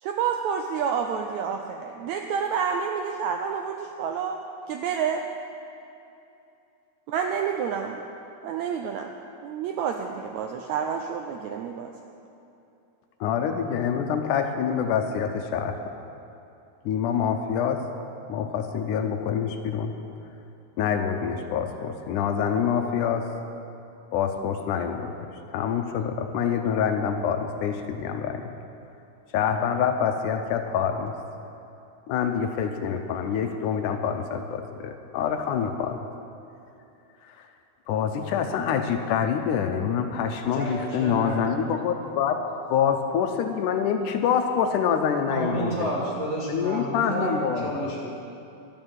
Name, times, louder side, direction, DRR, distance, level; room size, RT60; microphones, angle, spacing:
voice 1, 0.0-4.4 4.7-5.2 7.1-8.0 8.4-9.1 9.4-11.9, right 7 dB, 85° right, 3 dB, 1.6 m, -29 dB
voice 2, 13.2-16.0 16.9-17.9 18.3-20.0 20.8-23.3 24.1-25.1 25.5-28.6 29.3-31.2 32.1-36.0 37.2-37.5 37.9-42.4 42.7-45.9 46.5-47.7, left 7 dB, 75° left, 6 dB, 2.0 m, -26 dB
voice 3, 40.5-41.6 45.3-48.2, right 1 dB, 55° right, -6 dB, 0.7 m, -30 dB
12.0 x 9.0 x 7.3 m, 2.8 s
omnidirectional pair, 3.9 m